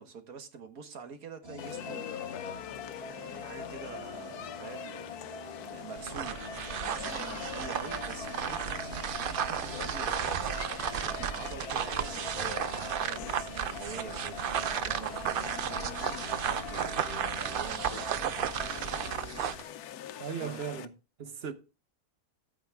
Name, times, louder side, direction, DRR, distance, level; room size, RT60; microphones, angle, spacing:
voice 1, 0.0-2.1 3.1-5.2 5.6-10.2 11.0-16.0 16.3-18.3 20.4-20.6, right 5 dB, 70° right, 1.7 m, -46 dB
sound 1, 1.4-19.1, left 2 dB, 20° right, 2.6 m, -45 dB
sound 2, 1.6-20.9, left 10 dB, 85° left, 1.2 m, -43 dB
sound 3, 6.0-19.6, right 9 dB, 90° right, 0.4 m, -34 dB
voice 2, 20.2-20.9 21.2-21.5, right 7 dB, 45° right, 1.1 m, -37 dB
10.0 x 8.8 x 3.4 m
omnidirectional pair, 1.6 m